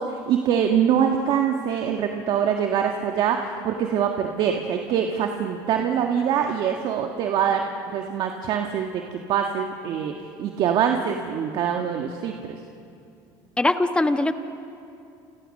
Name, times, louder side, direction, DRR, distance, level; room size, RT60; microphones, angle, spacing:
voice 1, 0.0-9.0 9.3-12.6, right 8 dB, 60° right, 3 dB, 1.6 m, -24 dB
voice 2, 13.6-14.3, left 2 dB, 10° left, 8 dB, 1.3 m, -21 dB
28.5 x 28.5 x 6.6 m, 2.6 s
supercardioid pair, 105°, 9 cm